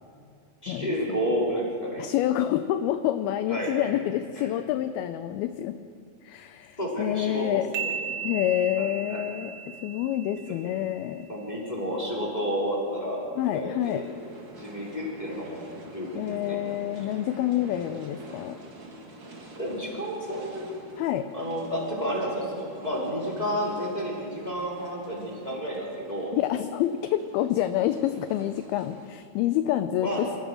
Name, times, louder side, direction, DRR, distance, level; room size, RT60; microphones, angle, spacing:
voice 1, 0.6-2.0 3.5-3.9 4.3-4.5 6.8-7.9 8.8-9.2 10.5-10.6 11.3-13.2 13.5-14.0 14.6-15.6 15.9-16.6 19.6-20.8 21.3-26.3 30.0-30.2, equal, 10° left, -4 dB, 3.7 m, -31 dB
voice 2, 2.0-5.8 6.2-7.7 8.2-9.5 9.8-11.3 13.4-14.0 16.2-18.6 21.0-21.3 26.3-30.3, left 12 dB, 80° left, 9 dB, 2.3 m, -27 dB
sound 1, 7.7-11.3, right 7 dB, 70° right, 1.4 m, -36 dB
sound 2, 13.8-29.1, right 2 dB, 35° right, 2.2 m, -47 dB
27.0 x 15.5 x 6.4 m, 2.4 s
omnidirectional pair, 4.8 m